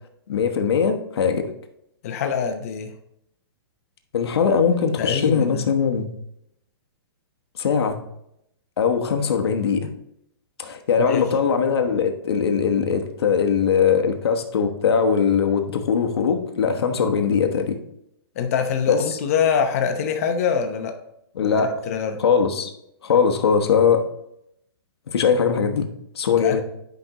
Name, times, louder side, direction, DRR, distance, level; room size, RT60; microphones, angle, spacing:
voice 1, 0.3-1.5 4.1-6.1 7.6-8.0 8.8-9.9 10.6-17.8 18.9-19.2 21.4-21.8 22.2-22.7 23.0-24.0 25.1-25.9 26.1-26.6, left 6 dB, 75° left, 4 dB, 1.1 m, -21 dB
voice 2, 2.0-2.9 5.0-5.7 11.0-11.3 18.4-20.9 21.4-22.2 26.4-26.6, left 7 dB, 35° left, 5 dB, 0.8 m, -24 dB
10.5 x 5.2 x 3.0 m, 0.78 s
hypercardioid pair, 170°, 13 cm